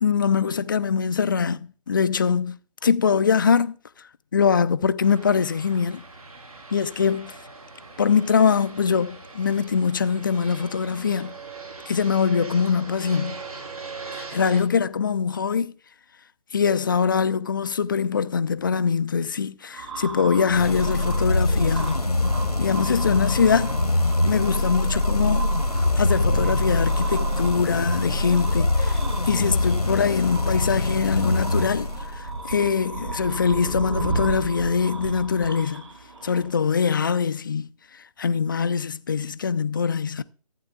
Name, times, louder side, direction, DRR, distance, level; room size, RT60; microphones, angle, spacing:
voice 1, 0.0-2.6 2.8-3.8 4.3-6.0 6.7-7.3 8.0-11.3 11.9-13.4 14.1-15.7 16.5-22.0 22.6-23.8 24.2-25.5 25.8-29.0 29.3-35.8 36.2-40.2, left 6 dB, 35° left, 0.5 m, -23 dB
Fixed-wing aircraft airplane, 5.0-14.6, right 4 dB, 70° right, 3.8 m, -40 dB
sound 1, 19.7-36.8, right 3 dB, 50° right, 6.0 m, -35 dB
sound 2, 20.5-32.5, left 2 dB, 90° left, 1.3 m, -24 dB
15.0 x 9.2 x 2.4 m
figure-of-eight pair, 145°, 19 cm